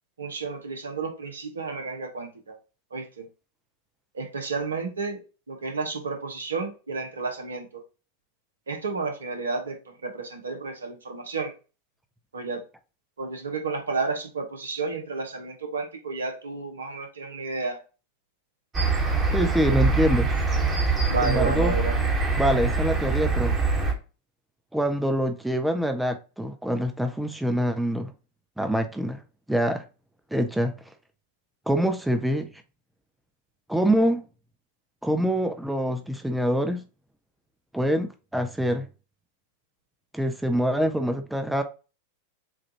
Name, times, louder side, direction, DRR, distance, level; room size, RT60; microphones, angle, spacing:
voice 1, 0.2-2.5 2.9-3.3 4.1-5.2 5.5-7.7 8.7-11.5 12.3-12.6 13.2-17.8 21.1-21.9, right 4 dB, 70° right, 1.1 m, -31 dB
sound 1, 18.7-23.9, right 4 dB, 20° right, 1.4 m, -24 dB
voice 2, 19.3-20.3 21.2-21.7 22.4-23.6 24.7-28.1 28.6-29.2 29.5-29.8 30.3-30.7 31.7-32.5 33.7-34.3 35.0-36.8 37.7-38.9 40.1-41.6, equal, 5° right, 0.5 m, -25 dB
7.3 x 2.5 x 2.8 m
figure-of-eight pair, 90°, 0 cm